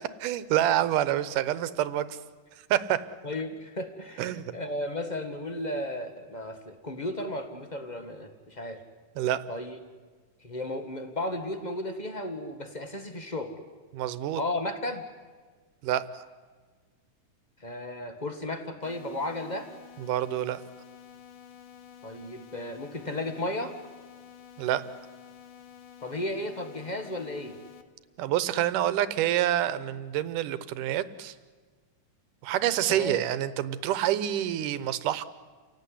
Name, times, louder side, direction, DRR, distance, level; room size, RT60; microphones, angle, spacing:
voice 1, 0.2-2.2 2.7-3.0 4.2-4.5 9.2-9.4 13.9-14.4 15.8-16.2 20.1-20.6 24.6-24.8 28.2-31.3 32.4-35.2, right 12 dB, 85° right, 15 dB, 2.5 m, -27 dB
voice 2, 3.2-8.8 9.5-9.8 10.4-13.5 14.4-15.0 17.6-19.7 22.0-23.7 26.0-27.6 32.9-33.2, left 1 dB, 35° left, 7 dB, 0.6 m, -34 dB
sound 1, 18.8-27.8, left 9 dB, 85° left, 2.9 m, -50 dB
29.5 x 17.5 x 10.0 m, 1.5 s
omnidirectional pair, 3.6 m